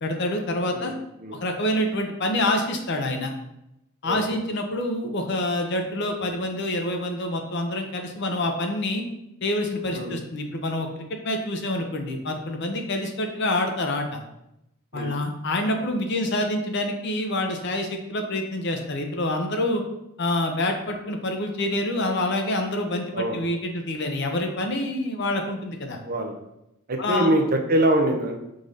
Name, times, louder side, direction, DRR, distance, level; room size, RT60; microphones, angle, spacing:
voice 1, 0.0-0.9 1.4-3.3 4.0-9.0 9.4-14.2 14.9-19.8 20.2-26.0 27.0-27.3, left 1 dB, 50° left, 4 dB, 0.6 m, -27 dB
voice 2, 23.1-23.5 26.0-26.4 26.9-28.4, right 1 dB, 40° right, 3 dB, 0.6 m, -24 dB
3.8 x 2.6 x 4.7 m, 0.85 s
head